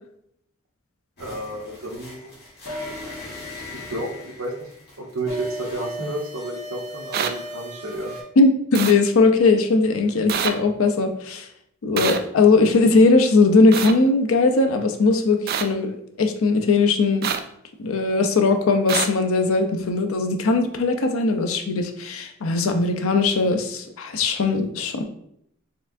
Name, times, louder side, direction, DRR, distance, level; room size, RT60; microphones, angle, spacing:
sound 1, 1.2-8.2, left 1 dB, 50° left, 1.5 m, -37 dB
voice 1, 1.2-2.3 3.7-4.7 5.0-8.1, right 2 dB, 70° right, 1 dB, 0.9 m, -31 dB
sound 2, 7.1-7.3 8.7-8.9 10.3-10.5 12.0-12.2 13.7-13.9 15.5-15.6 17.2-17.4 18.9-19.1, right 8 dB, 45° right, 0.3 m, -24 dB
voice 2, 8.4-11.5 11.8-17.3 17.8-25.0, left 3 dB, 70° left, 6 dB, 0.5 m, -19 dB
4.3 x 3.5 x 2.5 m, 0.72 s
head